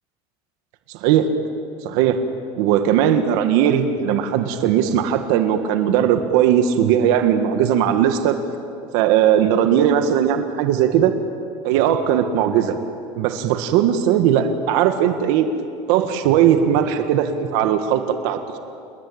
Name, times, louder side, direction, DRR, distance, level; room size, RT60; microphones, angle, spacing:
voice 1, 1.0-1.3 1.8-2.2 2.6-8.4 8.9-11.1 11.6-12.7 13.2-15.5 15.9-18.6, right 9 dB, 65° right, 7 dB, 1.8 m, -18 dB
28.5 x 21.5 x 8.8 m, 2.5 s
cardioid pair, 170°, 14 cm